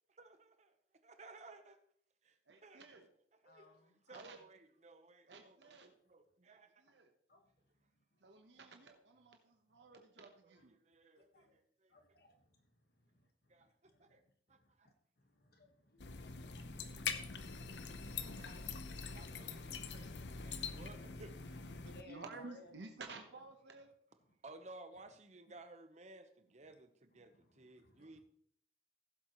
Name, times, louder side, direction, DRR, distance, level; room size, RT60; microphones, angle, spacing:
voice 1, 0.1-0.8 1.0-1.8 2.2-2.8 3.4-6.8 10.2-11.9 13.5-14.2 14.5-14.9 16.9-17.2 17.5-21.6 24.4-28.2, right 2 dB, 40° right, 8 dB, 0.9 m, -58 dB
voice 2, 2.5-3.1 4.1-4.4 5.3-5.9 6.5-7.1 8.2-10.8 22.0-23.9, right 3 dB, 85° right, 4 dB, 1.1 m, -53 dB
voice 3, 3.4-4.5 5.6-5.9 7.3-7.4 8.2-8.4 9.8-10.0 10.6-10.7 11.2-11.6 11.9-14.2 14.5-17.7 21.8-22.8 24.3-24.4 26.6-26.8 27.2-28.2, left 1 dB, 60° left, 5 dB, 1.5 m, -63 dB
sound 1, 16.0-22.0, left 5 dB, 80° left, 0.7 m, -44 dB
15.5 x 7.6 x 3.1 m, 0.64 s
head